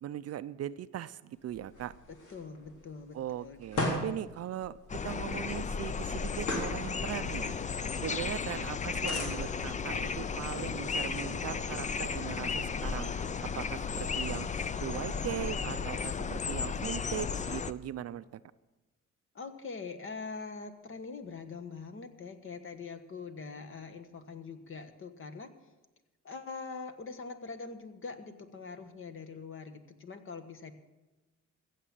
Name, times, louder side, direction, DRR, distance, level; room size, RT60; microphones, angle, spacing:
voice 1, 0.0-1.9 3.1-4.8 5.0-7.6 8.0-13.1 13.4-14.5 14.8-18.4, right 11 dB, 55° right, 15 dB, 0.5 m, -39 dB
sound 1, 1.3-12.7, left 1 dB, 80° left, 3.6 m, -41 dB
voice 2, 2.1-3.6 8.1-8.2 19.3-25.5 26.2-30.7, left 4 dB, 45° left, 9 dB, 1.4 m, -43 dB
sound 2, 4.9-17.7, left 5 dB, 25° left, 0.5 m, -34 dB
15.5 x 7.5 x 7.5 m, 1.1 s
cardioid pair, 90°, 30 cm